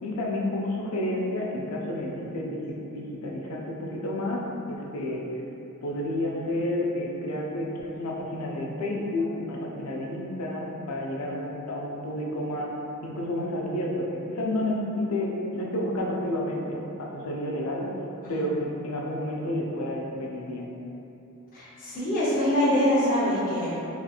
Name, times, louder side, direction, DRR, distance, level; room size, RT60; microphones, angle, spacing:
voice 1, 0.0-5.2 5.8-12.7 13.0-17.9 18.3-20.8, left 1 dB, 80° left, -2 dB, 0.4 m, -30 dB
voice 2, 21.5-23.8, equal, 40° left, -11 dB, 0.6 m, -24 dB
2.8 x 2.5 x 2.3 m, 3.0 s
head